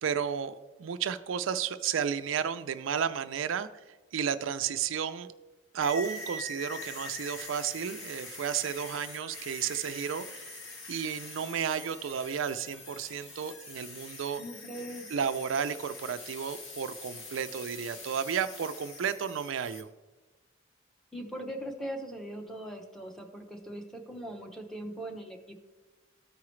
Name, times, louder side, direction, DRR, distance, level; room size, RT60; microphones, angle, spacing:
voice 1, 0.0-3.7 4.1-5.3 5.7-10.6 10.9-14.4 15.1-19.9, right 7 dB, 85° right, 11 dB, 0.4 m, -32 dB
sound 1, 5.8-19.8, left 2 dB, 70° left, 1.3 m, -44 dB
voice 2, 14.4-15.1 21.1-25.6, right 1 dB, ahead, 0 dB, 0.8 m, -40 dB
13.5 x 4.8 x 3.1 m, 1.2 s
head